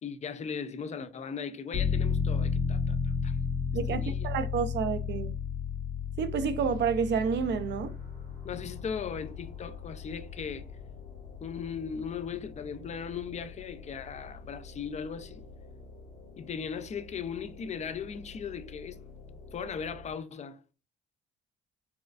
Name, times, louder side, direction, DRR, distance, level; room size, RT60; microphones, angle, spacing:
voice 1, 0.0-3.4 3.9-4.3 8.4-10.7 11.4-15.4 16.4-19.0 19.5-20.6, left 6 dB, 35° left, 0.4 m, -38 dB
sound 1, 1.7-14.2 14.6-14.7, left 5 dB, 65° left, 1.2 m, -34 dB
voice 2, 3.7-5.4 6.2-7.9, right 6 dB, 60° right, 0.5 m, -29 dB
sound 2, 6.6-20.1, left 2 dB, 85° left, 1.4 m, -50 dB
4.2 x 2.3 x 2.4 m
cardioid pair, 90°, 20 cm